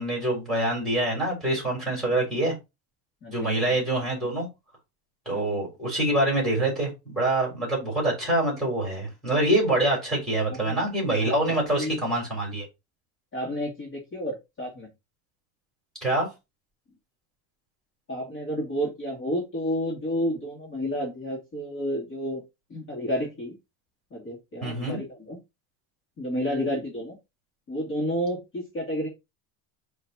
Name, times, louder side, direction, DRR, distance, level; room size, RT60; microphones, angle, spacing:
voice 1, 0.0-2.5 3.3-4.5 5.3-12.7 16.0-16.3 24.6-25.0, right 1 dB, ahead, 3.6 m, -25 dB
voice 2, 3.2-3.8 5.3-5.6 10.5-10.8 11.2-12.0 13.3-14.9 18.1-22.4 22.7-23.5 24.1-25.4 26.2-27.2 27.7-29.1, equal, 30° left, 2.7 m, -31 dB
9.8 x 3.4 x 2.9 m
cardioid pair, 180°, 42 cm